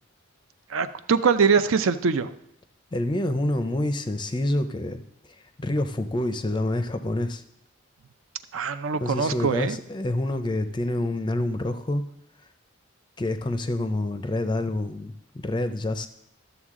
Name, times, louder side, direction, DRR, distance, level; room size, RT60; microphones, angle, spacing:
voice 1, 0.7-2.3 8.5-9.8, right 5 dB, 70° right, 12 dB, 0.5 m, -23 dB
voice 2, 2.9-5.0 5.6-7.4 9.0-12.0 13.2-16.1, left 1 dB, 20° left, 10 dB, 0.5 m, -27 dB
12.5 x 7.0 x 3.7 m, 0.76 s
head